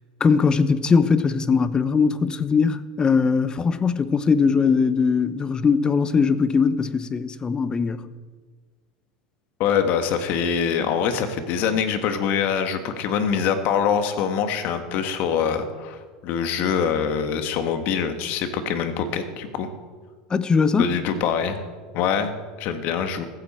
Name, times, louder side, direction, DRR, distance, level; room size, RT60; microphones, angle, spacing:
voice 1, 0.2-8.1 20.3-20.9, left 5 dB, 25° left, 0.9 m, -20 dB
voice 2, 9.6-19.7 20.8-21.6 21.9-23.2, left 7 dB, 55° left, 1.8 m, -24 dB
15.0 x 14.5 x 4.5 m
hypercardioid pair, 100°, 4 cm